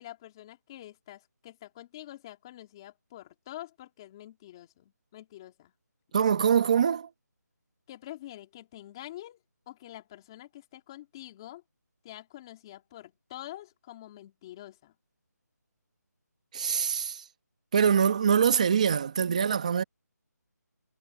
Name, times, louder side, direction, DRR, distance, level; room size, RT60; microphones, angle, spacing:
voice 1, 0.0-5.7 7.9-9.4 9.7-11.6 12.0-14.9, left 14 dB, 15° left, 3.0 m, -46 dB
voice 2, 6.1-7.1 16.5-17.2 17.7-19.8, right 7 dB, 25° right, 1.4 m, -24 dB
figure-of-eight pair, 175°, 10 cm